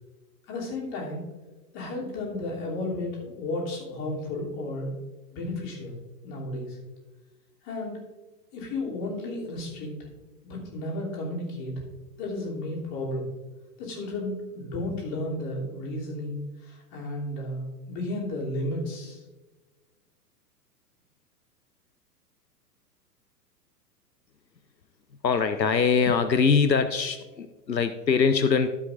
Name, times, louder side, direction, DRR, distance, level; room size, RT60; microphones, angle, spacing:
voice 1, 0.5-1.2 1.7-4.9 5.3-6.0 6.2-6.8 7.6-8.0 8.5-10.1 10.4-11.7 12.2-13.3 13.8-19.2, left 1 dB, 35° left, -3 dB, 3.0 m, -33 dB
voice 2, 25.2-28.7, left 5 dB, 90° left, 10 dB, 0.7 m, -23 dB
14.5 x 7.6 x 2.5 m, 1.2 s
figure-of-eight pair, 105°, 49 cm